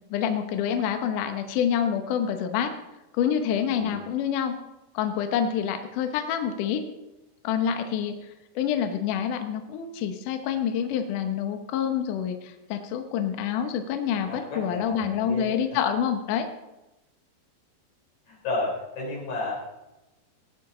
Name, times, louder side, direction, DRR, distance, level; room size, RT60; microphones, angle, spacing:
voice 1, 0.1-2.7 3.1-4.5 4.9-6.8 7.4-8.1 8.6-16.5, left 8 dB, 75° left, 6 dB, 1.9 m, -27 dB
voice 2, 14.1-15.8 18.3-19.5, left 2 dB, 45° left, -2 dB, 4.6 m, -33 dB
18.5 x 10.0 x 3.8 m, 0.98 s
omnidirectional pair, 5.0 m